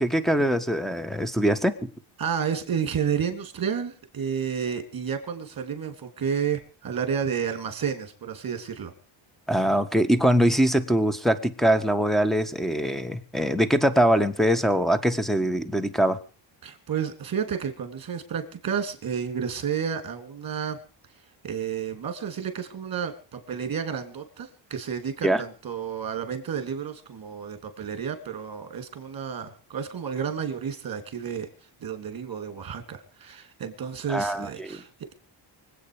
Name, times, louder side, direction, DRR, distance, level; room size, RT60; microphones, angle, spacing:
voice 1, 0.0-1.9 9.5-16.2 25.2-25.4 34.1-34.8, equal, ahead, 12 dB, 1.5 m, -23 dB
voice 2, 2.2-8.9 16.6-20.8 21.4-31.5 31.8-35.1, right 7 dB, 45° right, 7 dB, 3.3 m, -31 dB
25.0 x 8.7 x 5.1 m, 0.38 s
cardioid pair, 110°, 49 cm